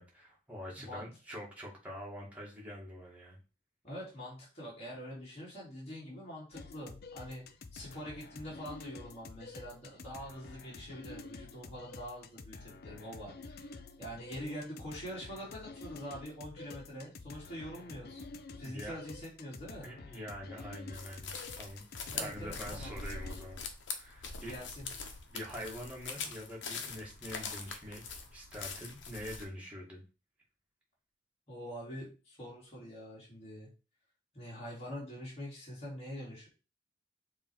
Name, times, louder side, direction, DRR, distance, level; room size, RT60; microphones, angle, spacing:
voice 1, 0.0-3.4 18.6-19.0 19.8-21.9 22.1-23.6 23.9-24.6 25.3-30.0, equal, 10° right, -4 dB, 2.2 m, -45 dB
voice 2, 0.8-1.1 3.8-7.4 7.7-18.2 18.6-19.9 22.1-22.9 24.5-24.9 31.5-33.7 34.3-36.5, equal, 35° left, -7 dB, 3.2 m, -45 dB
sound 1, 6.5-23.5, left 3 dB, 60° left, 0.7 m, -49 dB
sound 2, 20.9-29.5, left 5 dB, 90° left, 1.2 m, -43 dB
7.2 x 3.6 x 4.8 m, 0.33 s
head